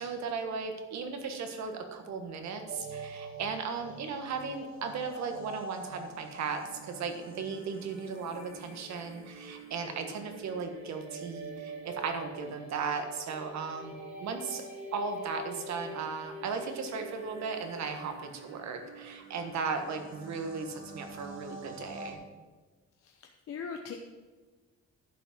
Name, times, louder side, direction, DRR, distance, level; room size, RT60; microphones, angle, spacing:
voice 1, 0.0-13.9 14.2-14.6 14.9-22.2, right 5 dB, 65° right, 5 dB, 1.6 m, -36 dB
sound 1, 2.7-22.1, right 3 dB, 45° right, 2.0 m, -45 dB
voice 2, 23.0-24.0, left 6 dB, 50° left, 3 dB, 0.8 m, -40 dB
11.0 x 6.0 x 7.5 m, 1.3 s
cardioid pair, 165°, 29 cm